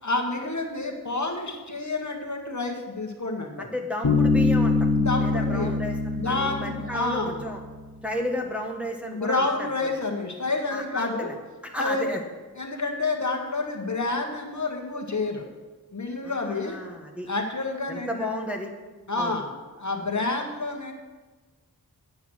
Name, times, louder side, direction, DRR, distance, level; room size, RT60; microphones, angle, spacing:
voice 1, 0.0-3.7 5.0-5.7 6.1-7.4 9.1-11.3 11.8-12.1 12.6-15.4 15.9-16.8 17.3-18.3 19.1-19.5 19.8-20.9, left 3 dB, 50° left, 2 dB, 1.6 m, -29 dB
voice 2, 3.6-4.9 5.2-7.6 8.0-9.9 10.7-11.3 11.6-12.2 16.2-17.3 17.9-18.7 19.2-19.3, left 1 dB, 5° right, 1 dB, 1.4 m, -33 dB
Bass guitar, 4.0-7.7, left 3 dB, 80° left, 1.6 m, -24 dB
9.2 x 7.9 x 6.3 m, 1.3 s
wide cardioid pair, 70°, 36 cm